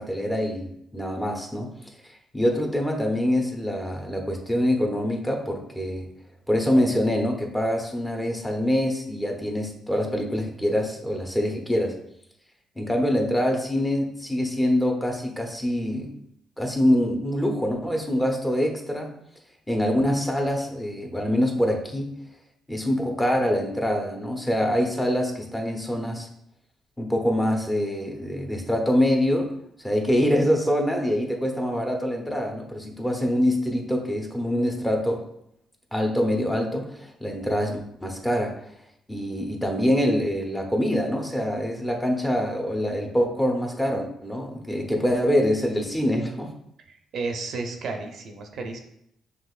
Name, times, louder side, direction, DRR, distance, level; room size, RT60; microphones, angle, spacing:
voice 1, 0.0-1.7 2.3-6.1 6.5-11.9 12.8-16.1 16.6-19.1 19.7-22.1 22.7-26.3 27.0-29.5 29.8-35.2 35.9-38.5 39.1-46.5, equal, 10° left, 2 dB, 0.7 m, -25 dB
voice 2, 47.1-48.8, right 3 dB, 65° right, 4 dB, 0.6 m, -32 dB
6.1 x 2.9 x 2.4 m, 0.75 s
cardioid pair, 90°, 0 cm